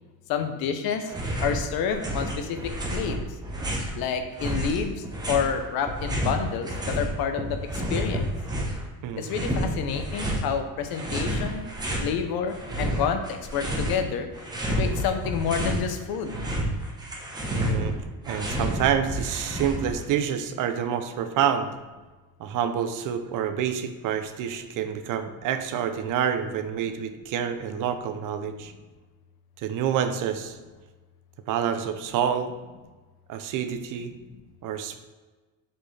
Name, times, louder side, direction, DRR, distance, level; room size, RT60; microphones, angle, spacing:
voice 1, 0.3-1.1 1.4-3.2 4.0-8.3 9.2-11.7 12.0-14.3 14.8-16.5 34.2-34.4, left 7 dB, 70° left, 7 dB, 0.8 m, -29 dB
sound 1, 1.0-1.6 1.9-4.0 4.4-7.1 7.4-8.8 9.3-10.5 10.9-12.1 12.5-14.0 14.3-15.8 16.1-20.0, right 1 dB, 10° right, 0.9 m, -30 dB
voice 2, 17.5-18.0 18.3-21.7 22.4-28.7 29.6-30.6 31.5-32.5 33.3-34.1 34.6-35.0, right 8 dB, 55° right, 9 dB, 0.6 m, -28 dB
7.6 x 4.5 x 3.3 m, 1.3 s
cardioid pair, 170°, 37 cm